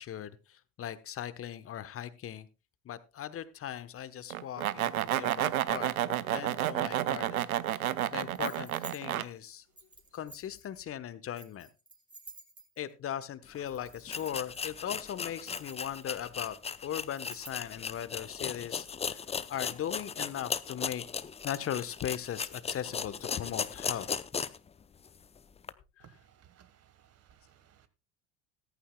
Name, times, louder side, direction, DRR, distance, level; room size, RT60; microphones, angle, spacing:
voice 1, 0.0-2.5 2.8-7.8 8.1-9.6 10.1-11.7 12.8-16.6 16.8-19.2 19.5-21.0 21.4-24.1 26.0-26.1, left 10 dB, 30° left, 1.1 m, -39 dB
sound 1, 4.3-9.2, right 12 dB, 80° right, 0.7 m, -30 dB
sound 2, 8.3-9.0 9.8-10.7 11.3-12.9 13.7-14.6 15.2-16.3 17.0-17.7, right 2 dB, 10° right, 2.8 m, -50 dB
sound 3, 13.5-13.6 14.1-24.7 25.1-25.2 25.6-25.7, left 6 dB, 15° left, 0.6 m, -37 dB
voice 2, 26.0-27.9, right 9 dB, 35° right, 1.5 m, -61 dB
14.5 x 14.5 x 2.2 m
hypercardioid pair, 75°, 42 cm